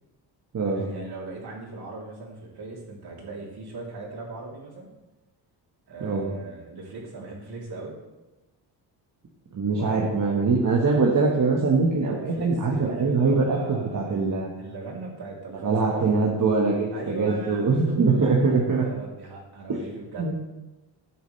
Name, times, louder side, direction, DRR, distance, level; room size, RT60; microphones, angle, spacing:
voice 1, 0.6-4.9 5.9-8.0 9.7-10.0 12.3-14.3 14.6-16.2 16.9-20.3, right 3 dB, 60° right, -3 dB, 3.4 m, -39 dB
voice 2, 9.5-14.5 15.6-18.8 19.7-19.8 20.2-20.3, right 4 dB, 45° right, -3 dB, 1.5 m, -23 dB
13.5 x 9.2 x 3.3 m, 1.1 s
cardioid pair, 120°, 44 cm